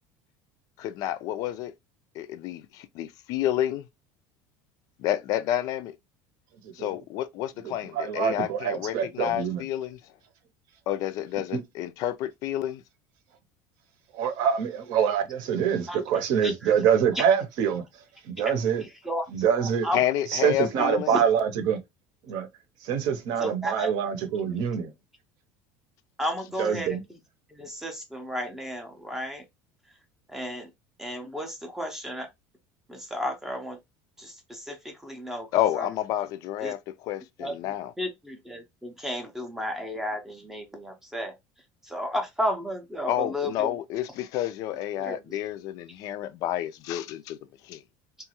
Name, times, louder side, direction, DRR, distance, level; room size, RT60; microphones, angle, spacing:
voice 1, 0.8-1.7 2.1-3.9 5.0-5.9 6.7-10.0 10.9-12.8 19.9-21.1 35.5-36.8 37.0-37.9 43.1-47.4 47.6-47.8, left 12 dB, 55° left, 0.4 m, -29 dB
voice 2, 7.6-9.7 11.5-11.6 14.1-17.8 18.2-18.8 19.3-19.9 20.3-21.8 22.3-22.5 22.8-24.9 26.6-27.0, right 8 dB, 60° right, 0.7 m, -25 dB
voice 3, 16.4-16.7 17.1-17.2 19.0-19.3 19.6-20.0 21.1-21.2 23.4-23.9 26.2-27.0 27.5-29.5 30.3-30.7 31.0-32.3 32.9-33.8 34.2-35.9 36.6-36.7 37.4-41.3 41.8-43.7 45.0-45.4, equal, 5° right, 0.5 m, -33 dB
3.0 x 2.3 x 2.9 m
cardioid pair, 145°, 7 cm